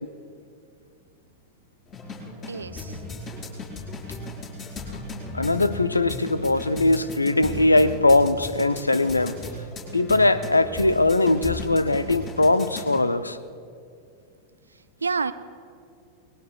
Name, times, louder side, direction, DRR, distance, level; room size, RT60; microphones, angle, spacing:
sound 1, 1.9-13.0, left 2 dB, 30° left, 4.8 m, -36 dB
voice 1, 2.4-3.0 14.7-15.3, right 5 dB, 75° right, 14 dB, 0.5 m, -29 dB
voice 2, 5.3-9.4 9.9-13.4, left 2 dB, 80° left, 14 dB, 0.6 m, -21 dB
28.0 x 20.5 x 2.4 m, 2.3 s
figure-of-eight pair, 90°, 0 cm